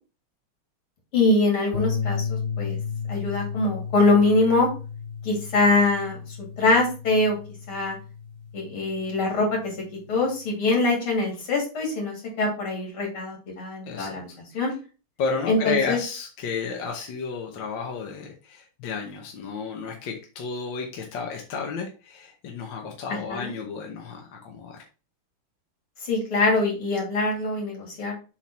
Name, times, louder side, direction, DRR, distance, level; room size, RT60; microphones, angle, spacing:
voice 1, 1.1-2.8 3.1-4.7 5.2-6.2 6.6-7.4 7.7-8.0 8.5-9.5 10.1-14.3 14.5-14.7 15.5-16.0 23.1-23.5 26.0-28.1, left 2 dB, 80° left, -1 dB, 3.6 m, -23 dB
sound 1, 1.7-10.1, left 6 dB, 30° left, 1.0 m, -33 dB
voice 2, 13.9-14.4 15.2-24.8, left 5 dB, 65° left, 1 dB, 1.7 m, -32 dB
7.3 x 3.8 x 4.2 m, 0.34 s
omnidirectional pair, 2.3 m